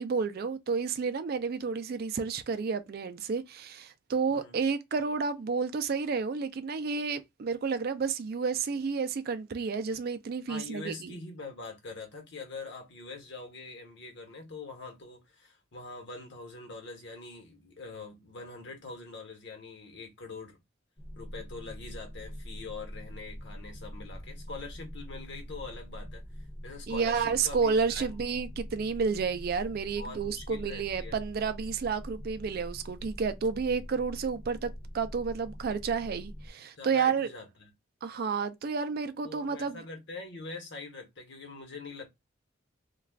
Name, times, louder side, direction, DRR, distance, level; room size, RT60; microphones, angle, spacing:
voice 1, 0.0-11.2 26.9-37.3 38.0-39.8, right 5 dB, 50° right, 0.3 m, -31 dB
voice 2, 10.5-20.6 21.1-26.2 26.6-28.2 30.0-31.2 36.8-37.5 39.2-42.1, left 3 dB, 55° left, 1.0 m, -44 dB
sound 1, 21.0-36.5, equal, 10° left, 0.5 m, -43 dB
2.3 x 2.3 x 3.4 m
head